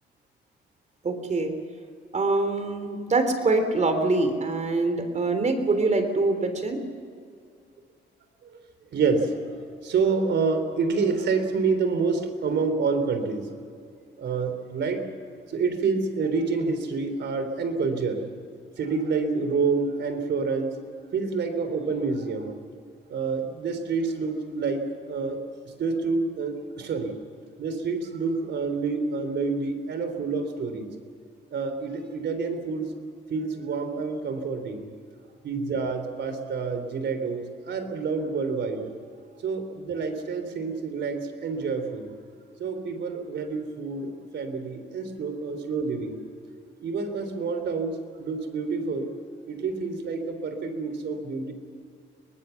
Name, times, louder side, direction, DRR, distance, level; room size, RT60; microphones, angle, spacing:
voice 1, 1.0-1.6 2.1-6.8, right 3 dB, 35° right, 7 dB, 3.5 m, -24 dB
voice 2, 8.9-9.6 9.8-13.5 14.2-15.0 15.5-18.3 18.8-20.8 21.1-22.5 23.1-25.4 25.8-27.1 27.6-30.9 31.5-32.9 33.3-34.9 35.4-38.9 39.4-42.1 42.6-46.2 46.8-47.9 48.2-49.1 49.5-51.5, right 4 dB, 65° right, 7 dB, 3.6 m, -28 dB
24.0 x 19.5 x 7.2 m, 2.3 s
cardioid pair, 90°, 20 cm